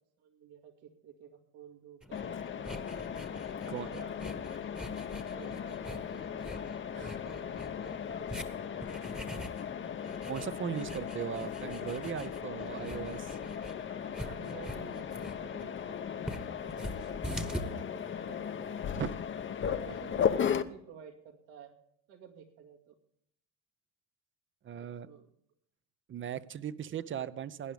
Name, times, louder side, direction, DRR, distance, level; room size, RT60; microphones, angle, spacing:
voice 1, 0.2-3.1 3.5-4.5 5.3-6.5 6.9-8.7 9.0-9.2 12.8-13.0 13.9-19.0 19.7-20.2 20.5-21.8 22.1-23.0 24.7-25.2 26.9-27.2, right 8 dB, 75° right, 2.3 m, -53 dB
sound 1, 2.0-17.6, equal, ahead, 1.2 m, -45 dB
Mechanisms, 2.1-20.6, left 8 dB, 30° left, 0.8 m, -37 dB
voice 2, 10.3-13.2 19.0-19.1 24.6-25.1 26.1-27.7, right 9 dB, 30° right, 0.7 m, -38 dB
18.0 x 10.0 x 3.5 m
supercardioid pair, 95°, 38 cm